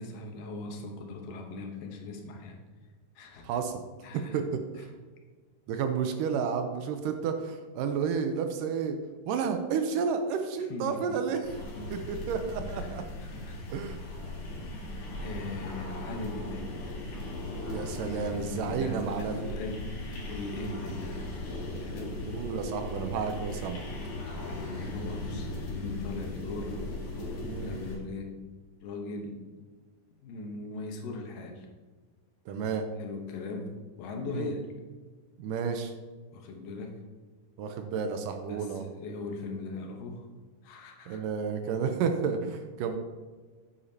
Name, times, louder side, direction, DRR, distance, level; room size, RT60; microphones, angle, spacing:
voice 1, 0.0-2.6 3.2-3.5 4.0-4.4 10.7-11.2 11.8-12.1 12.6-12.9 13.2-13.9 14.9-16.7 18.0-22.2 24.3-26.8 27.6-28.4 28.8-29.4 30.2-31.7 33.0-34.7 36.3-37.0 38.5-40.3 40.6-41.2 41.9-42.0, left 3 dB, 75° left, 2 dB, 2.7 m, -40 dB
voice 2, 3.4-3.8 4.1-4.9 5.7-9.0 9.3-11.5 11.9-13.1 13.7-14.0 17.7-19.5 20.6-20.8 22.3-23.8 27.4-27.7 32.5-32.9 34.3-34.5 35.4-35.9 37.6-38.8 41.1-43.0, right 6 dB, 80° right, 6 dB, 2.2 m, -31 dB
sound 1, 11.4-28.0, left 2 dB, 60° left, 3.0 m, -38 dB
9.3 x 8.7 x 2.8 m, 1.4 s
omnidirectional pair, 4.0 m